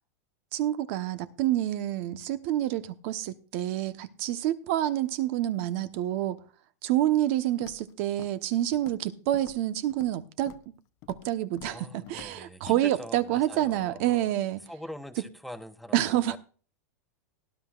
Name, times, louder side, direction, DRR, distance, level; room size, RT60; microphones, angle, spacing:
voice 1, 0.5-6.4 6.8-10.5 11.1-14.6 15.9-16.4, right 13 dB, 55° right, 1.1 m, -28 dB
Walk footsteps, 7.6-7.9 8.2-8.5 8.7-9.1 9.3-10.2 10.5-10.7 11.0-11.3 11.6-11.8 12.1-12.3 12.7-12.8, left 14 dB, 40° left, 0.7 m, -48 dB
voice 2, 11.6-14.3 14.7-16.4, equal, ahead, 0.9 m, -44 dB
18.5 x 11.0 x 2.5 m
supercardioid pair, 145°, 9 cm